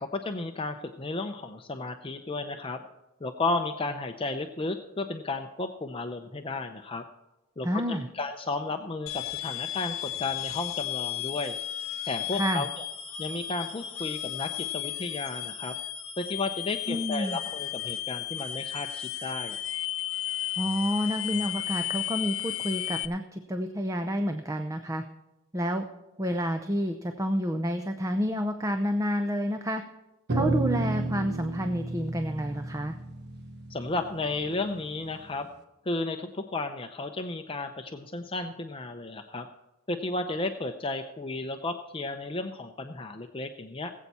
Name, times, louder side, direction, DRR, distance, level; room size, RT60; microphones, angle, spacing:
voice 1, 0.0-2.8 3.2-7.0 7.6-11.6 12.0-12.9 13.2-15.7 16.2-19.6 33.7-35.5 35.8-39.5 39.9-43.9, left 2 dB, 25° left, 6 dB, 0.6 m, -33 dB
voice 2, 7.6-8.1 12.3-12.7 16.9-17.4 20.6-25.0 25.5-25.8 26.2-29.8 30.3-33.0, equal, 15° right, 7 dB, 0.7 m, -29 dB
sound 1, 9.1-23.1, left 12 dB, 75° left, 0.9 m, -34 dB
sound 2, 30.3-34.8, right 2 dB, 55° right, 1.2 m, -31 dB
20.0 x 8.2 x 4.3 m, 1.0 s
head